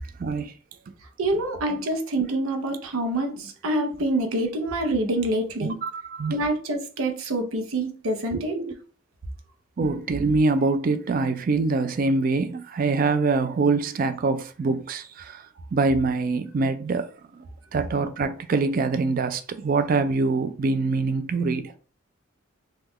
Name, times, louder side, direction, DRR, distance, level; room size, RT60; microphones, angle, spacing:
voice 1, 0.2-0.5 5.8-6.4 8.3-8.7 9.8-15.5 15.7-17.1 17.7-21.7, right 3 dB, 45° right, 0.3 m, -24 dB
voice 2, 1.2-5.8 6.3-8.6, right 1 dB, 85° right, 0.6 m, -26 dB
3.1 x 2.2 x 3.6 m
head